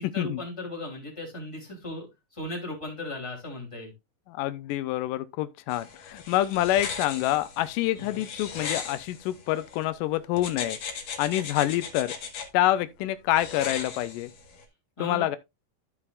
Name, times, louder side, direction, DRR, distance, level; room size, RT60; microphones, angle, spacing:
voice 1, 0.0-2.1 2.3-3.9 8.0-8.3 15.0-15.4, left 1 dB, 10° left, 3.0 m, -37 dB
voice 2, 4.3-10.8 11.2-12.1 12.5-14.3 15.0-15.4, left 14 dB, 85° left, 2.2 m, -27 dB
sound 1, 5.7-9.8 10.4-12.5 13.3-14.6, left 6 dB, 60° left, 2.6 m, -38 dB
14.0 x 5.6 x 2.4 m
omnidirectional pair, 3.7 m